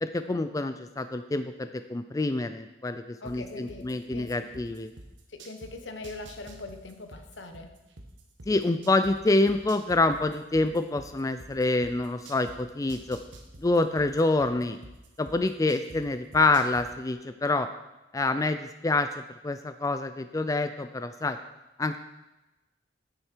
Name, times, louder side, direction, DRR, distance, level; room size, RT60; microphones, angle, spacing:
voice 1, 0.0-4.9 8.5-13.2 13.6-14.8 15.2-17.7 18.1-19.1 19.4-21.4 21.8-22.0, left 2 dB, 20° left, 9 dB, 0.4 m, -27 dB
voice 2, 3.2-4.5 5.3-7.8, left 2 dB, 75° left, 6 dB, 1.2 m, -42 dB
sound 1, 3.2-5.7 6.0-9.1 9.5-12.6 12.9-16.0 16.3-16.8, right 2 dB, 80° right, 1.4 m, -47 dB
9.9 x 9.1 x 4.6 m, 1.0 s
head